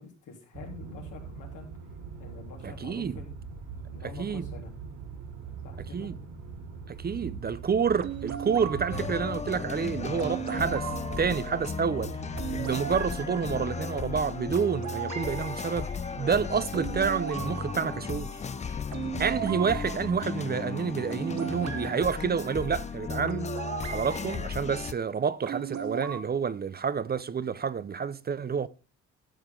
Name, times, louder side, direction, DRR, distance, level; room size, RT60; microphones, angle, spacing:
voice 1, 0.0-1.7 2.2-3.3 3.9-4.7 5.6-6.1, left 4 dB, 80° left, 3.6 m, -46 dB
sound 1, 0.5-12.6, right 5 dB, 85° right, 5.5 m, -42 dB
voice 2, 2.6-3.1 4.2-4.4 5.9-6.1 6.9-10.9 11.2-12.2 12.6-15.9 16.2-18.3 18.7-18.8 19.2-23.5 23.9-28.7, right 6 dB, 30° right, 0.6 m, -29 dB
sound 2, 8.0-24.4 25.5-26.2, right 8 dB, 65° right, 1.3 m, -38 dB
sound 3, 8.9-24.9, left 6 dB, 25° left, 0.5 m, -35 dB
12.5 x 7.0 x 3.8 m
cardioid pair, 90°, 30 cm